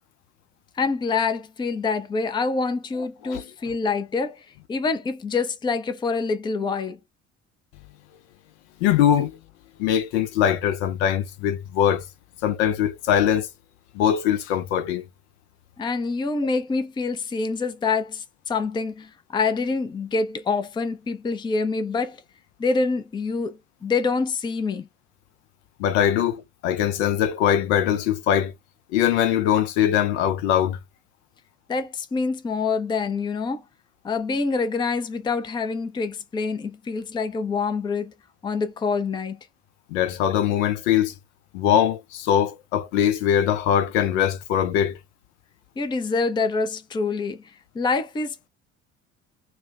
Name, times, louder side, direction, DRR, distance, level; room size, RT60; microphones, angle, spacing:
voice 1, 0.8-7.0 15.8-22.2 22.6-24.9 31.7-33.6 34.0-38.1 38.4-39.4 45.8-47.4 47.7-48.5, left 4 dB, 10° left, 0.5 m, -26 dB
voice 2, 8.8-9.4 9.8-12.0 12.4-13.5 13.9-15.0 25.8-28.5 28.9-30.8 39.9-41.1 41.5-45.0, left 10 dB, 60° left, 0.6 m, -22 dB
2.5 x 2.1 x 3.2 m
figure-of-eight pair, 55°, 38 cm